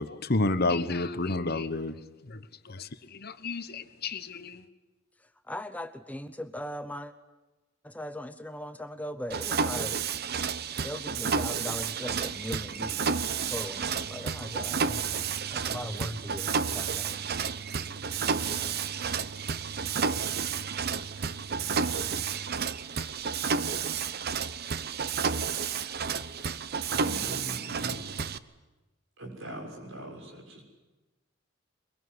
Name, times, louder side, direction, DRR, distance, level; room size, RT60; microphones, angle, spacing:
voice 1, 0.0-1.9 2.3-2.4 2.6-4.6, left 2 dB, 50° left, 11 dB, 1.2 m, -30 dB
voice 2, 5.2-7.1 7.8-10.0 10.8-15.0 15.5-17.2, left 1 dB, 10° left, 10 dB, 0.8 m, -39 dB
Mechanisms, 9.3-28.4, right 6 dB, 50° right, 0.8 m, -31 dB
voice 3, 26.9-28.2 29.2-30.6, right 1 dB, 70° right, 1 dB, 6.6 m, -41 dB
23.0 x 22.0 x 9.8 m, 1.1 s
head